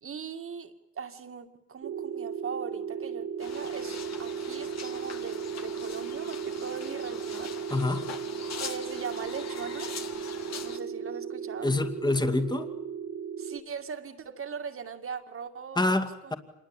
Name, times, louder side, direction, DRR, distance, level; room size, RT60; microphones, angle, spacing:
voice 1, 0.0-7.6 8.6-9.9 10.6-11.7 13.4-16.3, right 6 dB, 45° right, 7 dB, 2.4 m, -40 dB
sound 1, 1.8-13.6, right 7 dB, 75° right, 3.0 m, -36 dB
sound 2, 3.4-10.8, left 6 dB, 60° left, 2.4 m, -42 dB
voice 2, 7.7-8.1 11.6-12.7 15.8-16.3, left 2 dB, 15° left, 7 dB, 2.3 m, -27 dB
27.0 x 21.0 x 9.1 m, 0.83 s
cardioid pair, 90°, 30 cm